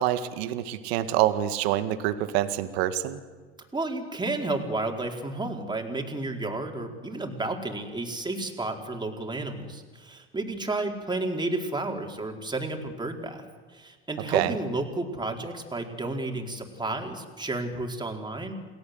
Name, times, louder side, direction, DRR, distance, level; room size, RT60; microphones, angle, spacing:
voice 1, 0.0-3.2 14.3-14.5, right 13 dB, 70° right, 10 dB, 2.0 m, -26 dB
voice 2, 3.7-13.4 13.7-18.5, right 2 dB, 15° right, 2 dB, 4.5 m, -32 dB
29.5 x 18.5 x 8.0 m, 1.5 s
hypercardioid pair, 85°, 32 cm